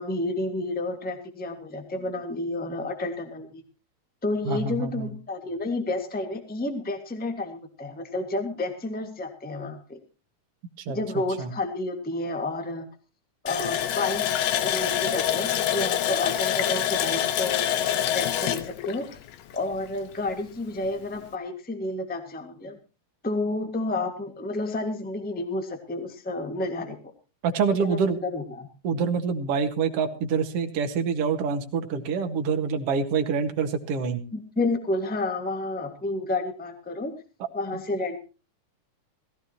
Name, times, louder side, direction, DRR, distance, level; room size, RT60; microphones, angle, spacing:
voice 1, 0.0-3.6 4.2-10.0 10.9-12.9 13.4-19.2 19.5-22.8 23.2-27.1 27.8-28.7 34.3-37.2 37.5-38.2, left 2 dB, 5° left, 6 dB, 0.9 m, -30 dB
voice 2, 4.5-5.1 10.8-11.0 11.4-11.5 27.4-28.2 28.8-34.2, right 5 dB, 55° right, 4 dB, 2.4 m, -26 dB
Water tap faucet, 13.5-20.0 20.3-20.4 20.8-21.0, left 11 dB, 70° left, 1.9 m, -26 dB
18.0 x 16.0 x 2.9 m, 0.33 s
omnidirectional pair, 3.6 m